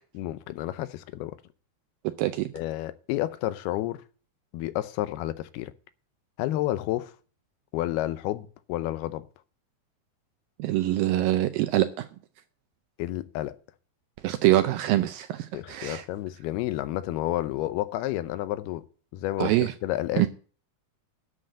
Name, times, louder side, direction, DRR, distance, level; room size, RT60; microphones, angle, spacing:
voice 1, 0.1-1.4 2.5-4.0 4.5-5.7 6.4-7.1 7.7-9.2 13.0-13.6 15.5-18.8 19.1-20.3, left 15 dB, 80° left, 2.6 m, -30 dB
voice 2, 2.2-2.5 10.6-12.1 14.2-16.0 19.4-19.7 20.2-20.3, right 15 dB, 80° right, 2.1 m, -24 dB
11.5 x 6.5 x 7.9 m
omnidirectional pair, 4.6 m